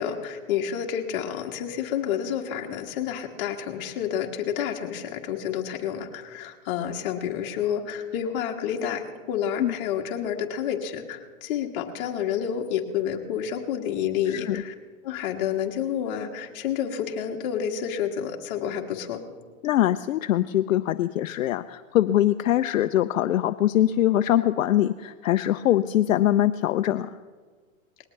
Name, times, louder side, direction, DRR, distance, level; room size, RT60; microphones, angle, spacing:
voice 1, 0.0-14.7 15.0-19.2, left 9 dB, 40° left, 2 dB, 1.7 m, -29 dB
voice 2, 14.3-14.6 19.6-27.1, left 12 dB, 70° left, 10 dB, 0.6 m, -23 dB
20.0 x 18.0 x 3.3 m, 1.5 s
hypercardioid pair, 140°, 41 cm